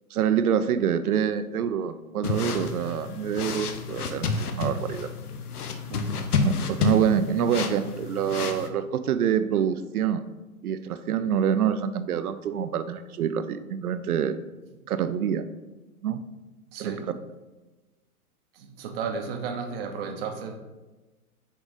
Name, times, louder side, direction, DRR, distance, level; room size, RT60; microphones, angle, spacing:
voice 1, 0.1-5.1 6.4-10.3 10.6-14.4 14.9-15.5 16.0-16.2 16.8-16.9, right 8 dB, 70° right, 12 dB, 0.6 m, -26 dB
sound 1, 2.2-8.7, left 4 dB, 75° left, 0.9 m, -30 dB
voice 2, 5.8-6.4 16.1-16.2 16.7-17.1 18.5-20.6, right 5 dB, 40° right, 5 dB, 0.8 m, -34 dB
6.2 x 3.8 x 4.0 m, 1.2 s
hypercardioid pair, 125°, 46 cm